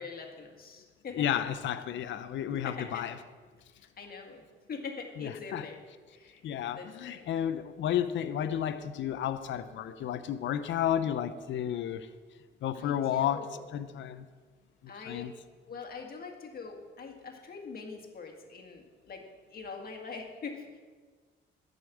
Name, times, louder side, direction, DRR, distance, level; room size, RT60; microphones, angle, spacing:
voice 1, 0.0-1.4 2.5-3.1 3.7-5.8 6.1-6.4 6.7-7.3 12.7-13.6 14.9-15.3 15.7-20.8, left 5 dB, 50° left, 1.9 m, -43 dB
voice 2, 1.1-3.1 5.2-5.7 6.4-12.1 12.6-13.4 13.7-14.3 15.1-15.3, left 10 dB, 70° left, 0.7 m, -32 dB
11.0 x 5.3 x 8.5 m
cardioid pair, 90°, 20 cm